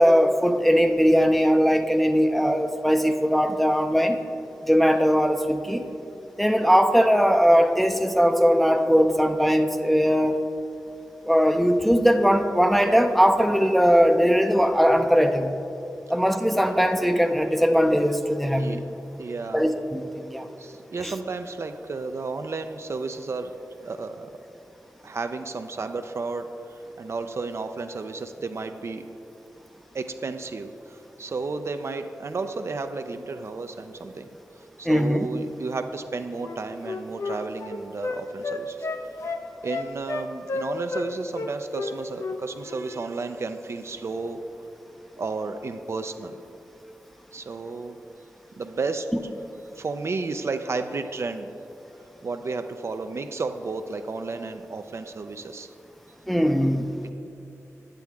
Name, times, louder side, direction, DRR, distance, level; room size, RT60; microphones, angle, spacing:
voice 1, 0.0-4.2 4.6-5.9 6.4-10.4 11.2-15.6 16.1-18.8 19.5-20.5 21.0-21.1 34.8-35.3 56.3-56.9, equal, ahead, 6 dB, 0.5 m, -20 dB
voice 2, 19.2-19.7 20.6-23.5 23.8-24.3 25.0-29.1 29.9-34.3 34.8-38.9 39.6-44.4 45.2-46.3 47.3-48.0 48.6-49.1 49.7-51.5 52.2-55.7 57.0-57.1, right 3 dB, 55° right, 8 dB, 0.4 m, -32 dB
Wind instrument woodwind instrument, 36.4-41.1 41.3-42.4 42.6-42.8, left 3 dB, 65° left, 0.6 m, -31 dB
9.0 x 8.3 x 3.5 m, 2.8 s
wide cardioid pair, 70°, 5 cm